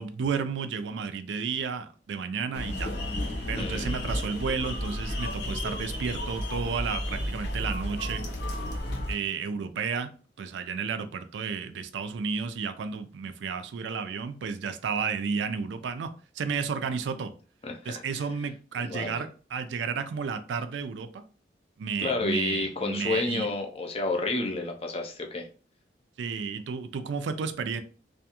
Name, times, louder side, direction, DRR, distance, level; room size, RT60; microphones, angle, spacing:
voice 1, 0.0-2.9 3.5-8.2 9.1-10.1 10.4-16.1 16.3-17.3 17.9-21.2 21.8-23.5 26.2-27.8, right 5 dB, 90° right, 10 dB, 0.4 m, -32 dB
sound 1, 2.5-9.1, left 1 dB, 75° left, 0.7 m, -32 dB
voice 2, 3.6-4.0 17.6-18.0 18.8-19.2 22.0-25.5, left 3 dB, 35° left, 2 dB, 0.4 m, -30 dB
2.4 x 2.3 x 2.8 m, 0.38 s
head